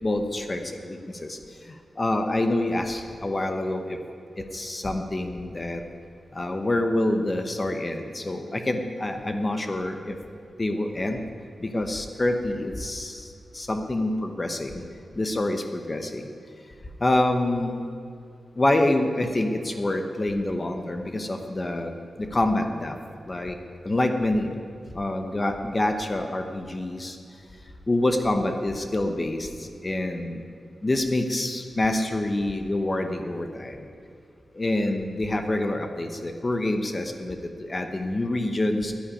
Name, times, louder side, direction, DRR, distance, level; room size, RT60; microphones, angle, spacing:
voice 1, 0.0-1.4 1.7-4.0 4.4-5.8 6.3-10.2 10.6-11.2 11.6-14.8 15.2-16.2 17.0-17.8 18.6-23.0 23.3-23.6 23.8-24.5 24.9-27.2 27.9-30.4 30.8-33.8 34.5-38.9, left 1 dB, 25° left, 6 dB, 0.8 m, -26 dB
10.5 x 10.5 x 9.8 m, 2.5 s
wide cardioid pair, 170°, 0 cm